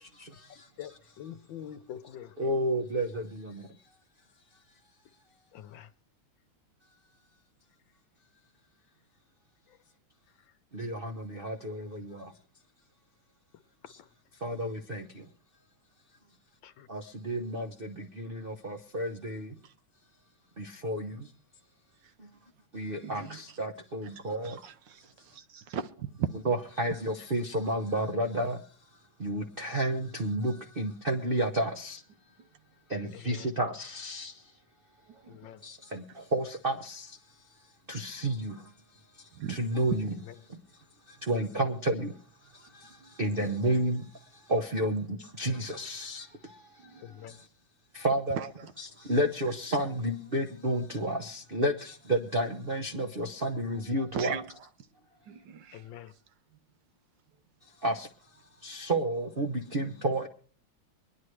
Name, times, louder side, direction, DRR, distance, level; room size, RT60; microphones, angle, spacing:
voice 1, 0.5-2.4 5.5-5.9 9.7-9.8 10.5-10.6 13.8-14.1 16.6-16.9 33.1-33.5 35.2-35.6 41.4-41.7 43.2-43.6 47.0-47.4 55.7-56.1, left 10 dB, 70° left, 1.4 m, -46 dB
voice 2, 2.4-3.7 10.7-12.3 14.4-15.1 16.9-19.5 20.6-21.3 22.7-24.6 26.5-28.6 29.2-32.0 32.9-34.3 35.6-37.1 37.9-38.6 39.5-40.0 41.2-42.1 42.7-42.9 43.2-44.0 44.5-46.6 47.9-48.4 49.0-54.3 57.8-58.1 58.6-60.3, right 1 dB, 45° right, 0.7 m, -31 dB
voice 3, 23.0-23.6 24.0-26.3 26.9-27.0 32.4-32.5 35.1-35.5 36.1-36.2 39.3-40.0 42.8-43.2 44.7-44.8 46.8-47.1 48.3-49.1 49.4-49.5 54.1-54.7 55.2-56.2 56.5-56.6 57.3-57.4, right 8 dB, 70° right, 1.3 m, -40 dB
24.5 x 10.5 x 3.2 m
omnidirectional pair, 2.3 m